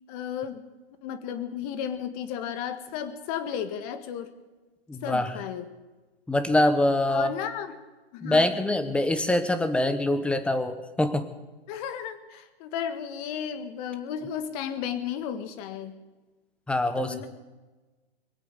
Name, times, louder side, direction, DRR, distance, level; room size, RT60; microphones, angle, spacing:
voice 1, 0.1-0.6 1.0-4.3 5.0-5.7 7.1-7.8 8.1-8.5 11.7-16.0 17.0-17.3, left 8 dB, 40° left, 10 dB, 1.7 m, -34 dB
voice 2, 4.9-5.4 6.3-7.3 8.2-11.3 16.7-17.3, left 1 dB, 5° left, 10 dB, 0.8 m, -24 dB
22.5 x 8.4 x 6.8 m, 1.2 s
hypercardioid pair, 135°, 31 cm